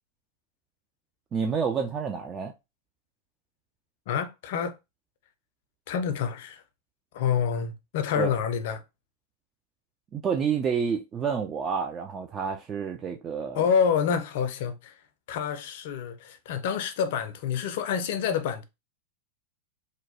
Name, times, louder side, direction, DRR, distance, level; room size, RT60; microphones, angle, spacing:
voice 1, 1.3-2.5 8.2-8.3 10.1-13.6, right 6 dB, 25° right, 0.3 m, -29 dB
voice 2, 4.1-4.8 5.9-6.6 7.1-8.8 13.5-14.9 15.3-18.6, left 7 dB, 55° left, 0.4 m, -27 dB
2.8 x 2.1 x 2.8 m
figure-of-eight pair, 90°, 0 cm